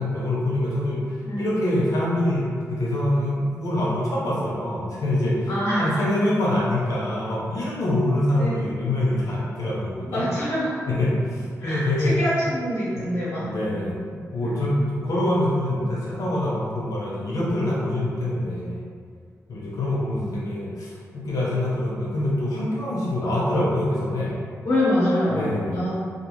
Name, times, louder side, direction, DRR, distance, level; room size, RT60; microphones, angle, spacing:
voice 1, 0.0-5.5 5.8-10.3 10.9-12.2 12.9-13.1 13.4-14.0 14.3-18.8 19.5-24.4 25.3-25.8, left 1 dB, 85° left, -6 dB, 0.6 m, -25 dB
voice 2, 5.5-6.0 8.4-8.6 10.1-10.8 11.6-13.8 14.4-14.6 20.1-20.3 24.6-26.0, equal, 55° left, -10 dB, 0.9 m, -25 dB
2.4 x 2.3 x 3.0 m, 2.1 s
wide cardioid pair, 145°, 6 cm